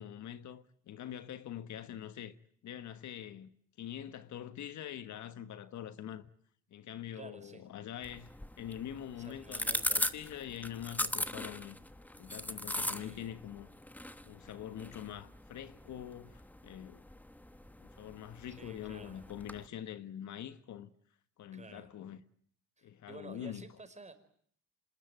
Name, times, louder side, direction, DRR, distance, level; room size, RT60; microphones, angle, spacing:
voice 1, 0.0-2.3 2.6-3.5 3.8-6.3 6.7-11.8 12.2-13.7 14.2-17.0 17.8-20.9 21.4-22.2 22.8-23.7, left 10 dB, 70° left, 1.4 m, -44 dB
voice 2, 7.1-7.6 9.2-10.0 12.8-13.3 18.5-19.2 21.5-21.9 22.8-24.1, right 3 dB, 25° right, 5.0 m, -52 dB
sound 1, 8.0-19.7, left 1 dB, 5° left, 1.3 m, -40 dB
26.0 x 21.0 x 9.1 m
cardioid pair, 90°, 30 cm